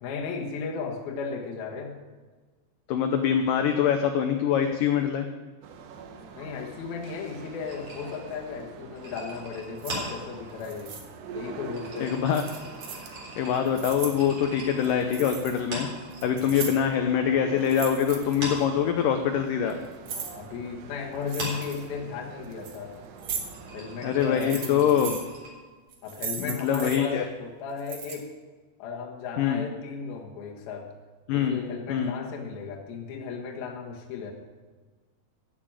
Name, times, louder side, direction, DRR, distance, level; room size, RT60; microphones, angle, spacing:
voice 1, 0.0-2.0 6.3-10.9 11.3-12.1 16.2-16.5 20.3-22.9 23.7-25.0 26.0-28.3 28.8-30.9 31.3-34.3, left 5 dB, 65° left, 0 dB, 3.2 m, -35 dB
voice 2, 2.9-5.3 12.0-12.4 13.4-15.9 16.2-19.8 24.0-25.2 26.4-27.3 29.4-29.6 31.3-31.6 31.9-32.1, left 8 dB, 85° left, 7 dB, 1.9 m, -24 dB
sound 1, 5.6-25.1, right 4 dB, 80° right, 3.2 m, -45 dB
sound 2, 7.6-16.6 16.9-17.9 18.2-25.5, right 1 dB, 35° right, 4.4 m, -41 dB
sound 3, 9.8-9.9 10.6-11.0 12.3-13.1 13.6-14.2 14.8-15.6 15.9-16.9 17.6-18.6 19.4-20.3 21.2-21.9 22.4-22.8 23.2-23.4 24.2-25.2 25.9-27.0 27.8-28.2, right 6 dB, 55° right, 2.1 m, -37 dB
13.5 x 7.3 x 8.9 m, 1.4 s
omnidirectional pair, 4.9 m